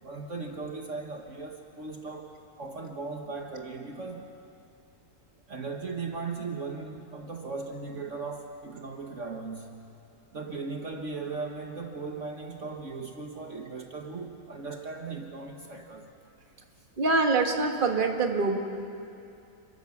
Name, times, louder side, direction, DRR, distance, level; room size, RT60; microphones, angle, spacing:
voice 1, 0.0-4.3 5.5-9.8 10.3-16.1, right 4 dB, 50° right, 2 dB, 1.8 m, -38 dB
voice 2, 17.0-18.6, right 3 dB, 30° right, 3 dB, 1.8 m, -24 dB
28.0 x 24.0 x 7.3 m, 2.7 s
omnidirectional pair, 1.7 m